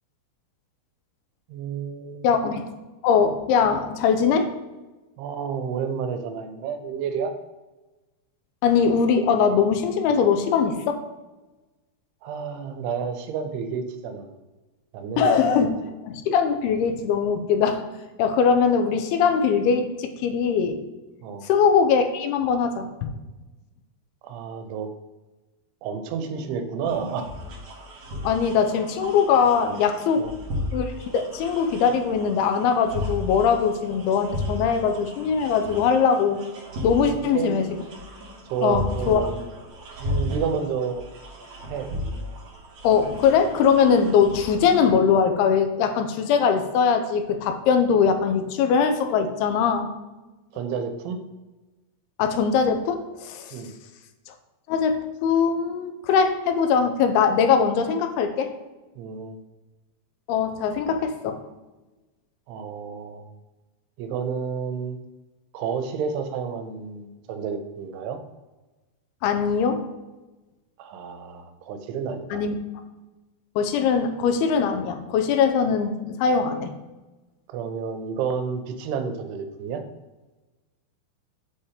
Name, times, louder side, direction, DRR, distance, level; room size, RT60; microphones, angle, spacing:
voice 1, 1.5-2.3 5.2-7.3 12.2-14.3 14.9-15.7 21.2-21.5 24.2-24.9 25.8-27.3 30.2-30.3 37.1-37.6 38.5-39.4 40.0-41.0 41.6-41.9 50.5-51.2 53.5-53.7 59.0-59.4 62.5-63.3 64.0-65.0 65.5-68.2 70.8-72.4 77.5-79.8, right 6 dB, 85° right, 6 dB, 2.7 m, -30 dB
voice 2, 2.2-2.6 3.0-4.5 8.6-11.0 15.2-15.7 16.0-17.8 18.2-20.8 21.4-23.1 28.2-30.3 30.7-36.4 36.8-37.7 38.6-39.2 42.8-49.9 52.2-53.6 54.3-54.4 54.7-58.5 60.3-61.4 69.2-69.8 72.3-72.6 73.6-76.7, left 6 dB, 85° left, 7 dB, 2.5 m, -21 dB
sound 1, 26.8-44.9, left 1 dB, 60° right, 1.7 m, -35 dB
7.2 x 2.9 x 4.9 m, 1.1 s
omnidirectional pair, 4.6 m